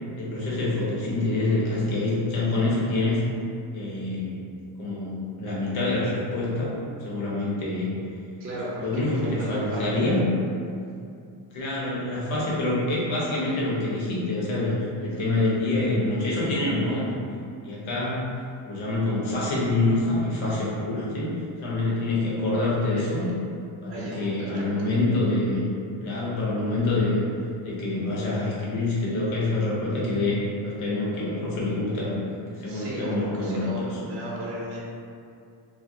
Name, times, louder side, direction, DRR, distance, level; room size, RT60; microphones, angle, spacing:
voice 1, 0.2-3.2 3.7-4.5 4.8-7.9 8.8-10.3 11.5-17.1 17.6-21.3 21.6-23.3 23.8-25.6 26.0-27.2 27.6-32.1 32.5-34.1, left 2 dB, 75° left, -6 dB, 0.9 m, -26 dB
voice 2, 8.4-10.2 23.8-24.9 32.6-34.8, equal, 30° right, -5 dB, 0.5 m, -35 dB
2.4 x 2.0 x 2.6 m, 2.5 s
cardioid pair, 95°, 48 cm